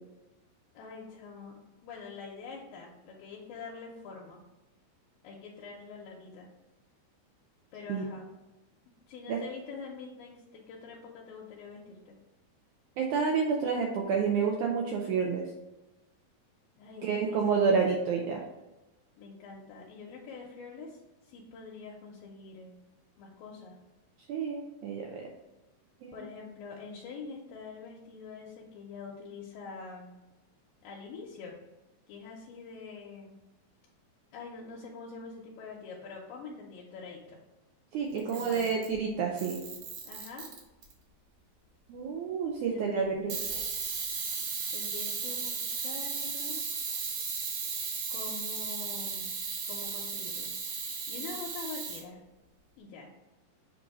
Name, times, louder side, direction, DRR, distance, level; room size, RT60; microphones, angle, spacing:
voice 1, 0.7-1.6 1.8-4.4 5.2-6.5 7.7-8.3 9.1-12.2 16.8-17.9 19.2-22.8 23.2-23.8 26.1-30.2 30.8-31.5 32.1-33.4 34.3-37.4 38.1-38.8 40.1-40.5 42.7-43.4 44.7-46.6 48.1-49.3 49.7-52.2 52.8-53.1, left 4 dB, 80° left, -3 dB, 2.4 m, -45 dB
voice 2, 13.0-15.4 17.0-18.4 24.3-25.2 26.0-26.2 37.9-39.6 41.9-43.4, right 5 dB, 90° right, 0 dB, 1.7 m, -29 dB
Camera, 38.2-38.9 39.4-40.9 43.3-52.0, right 5 dB, 65° right, 1.9 m, -35 dB
7.5 x 2.7 x 4.7 m, 1.1 s
omnidirectional pair, 4.2 m